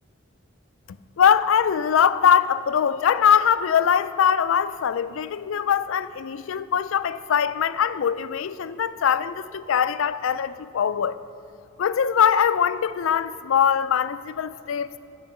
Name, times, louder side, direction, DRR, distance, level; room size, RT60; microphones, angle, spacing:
voice 1, 1.2-11.2 11.8-14.9, left 8 dB, 75° left, 0.4 m, -22 dB
10.0 x 5.7 x 7.1 m
head